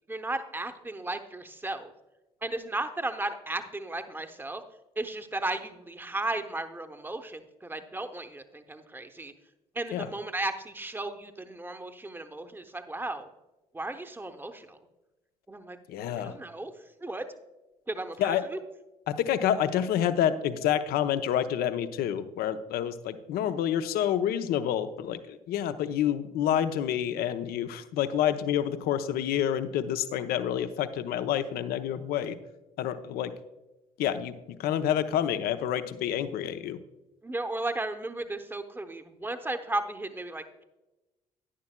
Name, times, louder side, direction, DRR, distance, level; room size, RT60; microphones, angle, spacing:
voice 1, 0.1-1.9 2.4-4.6 5.0-9.3 9.7-13.3 13.7-14.8 15.5-15.8 16.2-16.7 17.0-17.2 17.9-18.6 37.2-40.6, right 2 dB, 10° right, 8 dB, 0.9 m, -35 dB
voice 2, 15.9-16.4 18.2-18.4 19.1-32.4 32.8-33.3 34.0-36.8, left 10 dB, 60° left, 11 dB, 0.7 m, -28 dB
11.0 x 10.5 x 2.2 m, 1.0 s
figure-of-eight pair, 45°, 18 cm